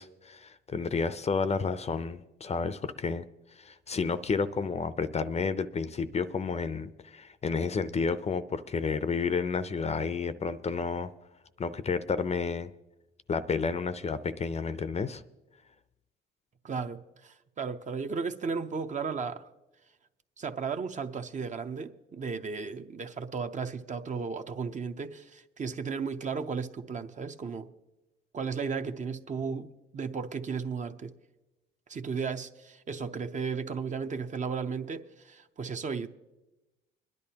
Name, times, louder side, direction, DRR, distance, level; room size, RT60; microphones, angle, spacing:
voice 1, 0.0-3.2 3.6-11.1 11.6-12.7 13.3-15.2, left 5 dB, 35° left, 0.5 m, -31 dB
voice 2, 16.6-19.5 20.4-27.7 28.3-31.1 31.9-36.1, right 5 dB, 40° right, 0.6 m, -35 dB
24.5 x 10.5 x 2.8 m
cardioid pair, 90°, 20 cm